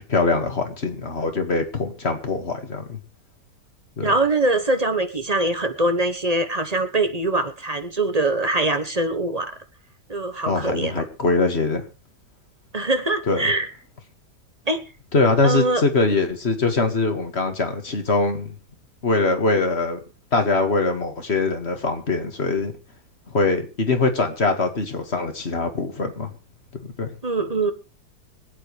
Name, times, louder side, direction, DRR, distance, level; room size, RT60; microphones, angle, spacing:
voice 1, 0.0-3.0 4.0-4.1 10.5-11.9 13.3-13.5 15.1-18.5 19.0-20.0 20.3-22.7 23.3-26.3 26.7-27.1, left 3 dB, 40° left, 6 dB, 2.1 m, -22 dB
voice 2, 4.0-9.5 10.1-11.0 12.7-13.7 14.7-14.8 15.4-15.8 27.2-27.7, right 2 dB, 25° right, 9 dB, 1.1 m, -23 dB
25.5 x 8.8 x 3.3 m, 0.32 s
omnidirectional pair, 1.7 m